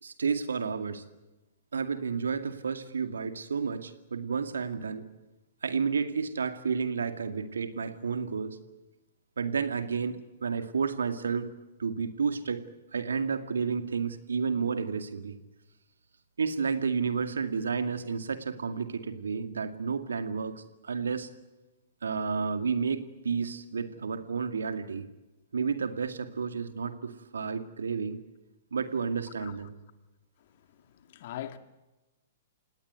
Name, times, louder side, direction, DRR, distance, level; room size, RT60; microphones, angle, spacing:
voice 1, 0.0-1.0 1.7-5.0 5.6-8.6 9.4-11.5 11.8-12.6 12.9-15.4 16.4-21.3 22.0-25.1 25.5-28.2 28.7-29.7, right 5 dB, 75° right, 2.2 m, -31 dB
voice 2, 31.1-31.6, left 12 dB, 50° left, 2.0 m, -39 dB
29.0 x 18.0 x 8.1 m
figure-of-eight pair, 115°, 0 cm